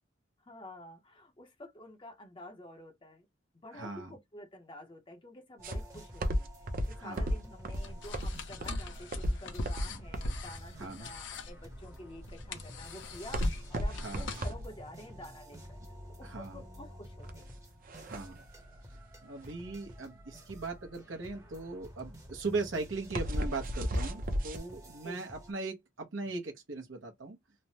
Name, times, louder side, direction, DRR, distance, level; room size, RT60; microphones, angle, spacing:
voice 1, 0.5-3.3 3.6-15.8 16.2-17.5 23.1-23.2 25.0-25.2, left 1 dB, 25° left, 0.6 m, -49 dB
voice 2, 3.7-4.2 7.0-7.3 9.9-10.0 10.8-11.1 14.0-14.3 16.2-16.6 18.0-18.4 19.2-27.4, right 3 dB, 80° right, 0.8 m, -39 dB
sound 1, 5.6-25.5, equal, 15° right, 0.7 m, -52 dB
sound 2, 5.6-24.6, equal, 45° right, 0.6 m, -35 dB
sound 3, 7.8-14.5, left 2 dB, 70° left, 0.7 m, -42 dB
3.2 x 2.0 x 2.7 m
head